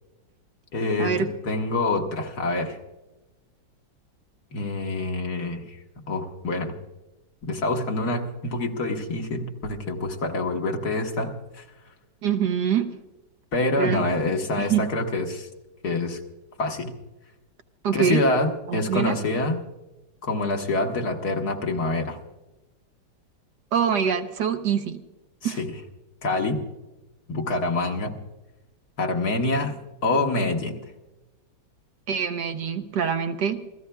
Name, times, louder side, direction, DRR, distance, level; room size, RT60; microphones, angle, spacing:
voice 1, 0.7-2.8 4.5-5.8 6.1-6.8 7.4-11.7 13.5-15.5 15.8-16.2 16.6-16.9 17.9-19.6 20.2-22.2 25.4-25.8 26.2-26.6 27.3-28.1 29.0-29.7 30.0-30.8, left 2 dB, 55° left, 2 dB, 1.9 m, -26 dB
voice 2, 12.2-12.9 13.8-14.0 14.6-14.9 17.8-18.2 18.7-19.1 23.7-25.0 25.4-25.6 32.1-33.6, right 7 dB, 65° right, 7 dB, 1.4 m, -24 dB
29.0 x 15.0 x 2.3 m, 1.1 s
omnidirectional pair, 2.0 m